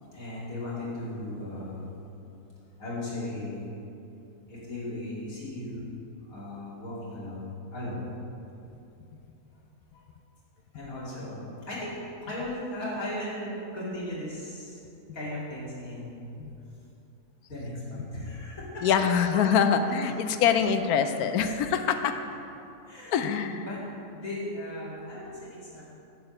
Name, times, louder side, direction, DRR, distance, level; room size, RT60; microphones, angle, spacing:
voice 1, 0.1-1.9 2.8-3.7 4.5-5.8 6.2-8.0 9.9-10.1 10.7-14.8 15.1-16.4 17.5-18.9 19.3-19.4 22.9-23.2 23.6-23.8 24.1-25.9, left 1 dB, 60° left, -8 dB, 3.1 m, -37 dB
voice 2, 18.8-22.1 23.1-23.7, left 7 dB, 75° left, 8 dB, 1.1 m, -24 dB
8.9 x 7.1 x 5.4 m, 2.7 s
omnidirectional pair, 1.7 m